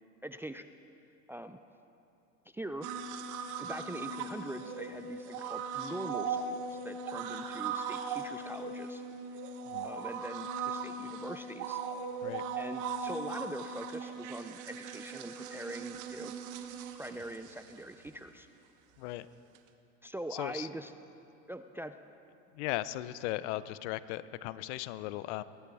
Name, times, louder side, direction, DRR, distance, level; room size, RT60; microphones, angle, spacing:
voice 1, 0.2-0.7 1.3-1.6 2.5-2.9 3.6-9.0 9.3-9.4 9.8-11.8 12.6-16.3 17.0-18.5 20.0-20.9 21.5-21.9, right 1 dB, 5° right, 9 dB, 0.4 m, -43 dB
sound 1, 2.8-18.1 19.6-19.7, right 5 dB, 55° right, 1.3 m, -39 dB
voice 2, 20.3-20.7 22.5-25.4, left 16 dB, 65° left, 16 dB, 0.7 m, -37 dB
22.0 x 17.5 x 3.5 m, 2.8 s
hypercardioid pair, 95°, 37 cm